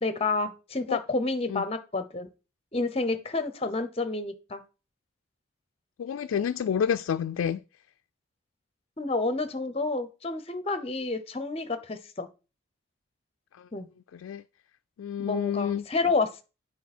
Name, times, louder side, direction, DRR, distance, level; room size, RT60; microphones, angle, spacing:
voice 1, 0.0-2.3 2.7-4.6 9.0-12.3 13.7-13.9 15.2-16.4, left 3 dB, 30° left, 0.8 m, -29 dB
voice 2, 6.0-7.6 14.1-14.4 15.0-15.8, left 8 dB, 80° left, 0.3 m, -29 dB
9.2 x 4.8 x 4.3 m
head